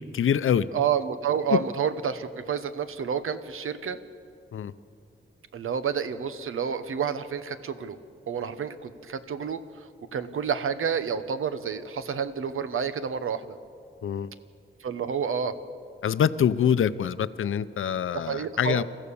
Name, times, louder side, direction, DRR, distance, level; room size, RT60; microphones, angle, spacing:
voice 1, 0.1-0.7 1.5-1.6 4.5-4.7 14.0-14.3 16.0-18.8, left 8 dB, 75° left, 15 dB, 0.7 m, -25 dB
voice 2, 0.7-4.0 5.5-8.0 8.3-9.6 10.1-13.6 14.8-15.6 18.1-18.8, right 7 dB, 90° right, 11 dB, 1.1 m, -29 dB
28.0 x 14.5 x 7.0 m, 2.5 s
wide cardioid pair, 140°, 21 cm